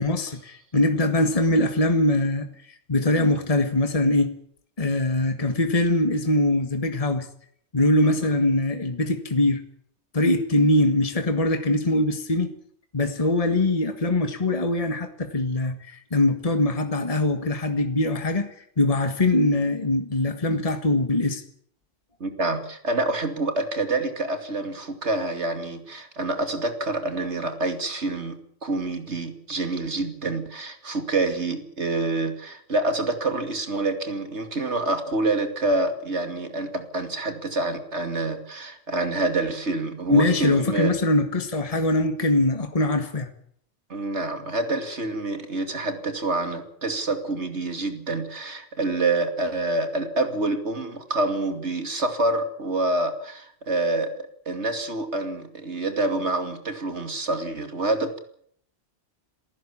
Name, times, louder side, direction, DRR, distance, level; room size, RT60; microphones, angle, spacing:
voice 1, 0.0-2.5 2.9-4.3 4.8-7.3 7.7-9.6 10.1-12.5 12.9-21.4 40.1-43.3, left 2 dB, 30° left, 1.7 m, -22 dB
voice 2, 22.2-28.4 28.6-40.9 43.9-54.1 54.5-58.2, right 2 dB, 70° right, 2.8 m, -27 dB
28.0 x 15.0 x 7.3 m
omnidirectional pair, 1.2 m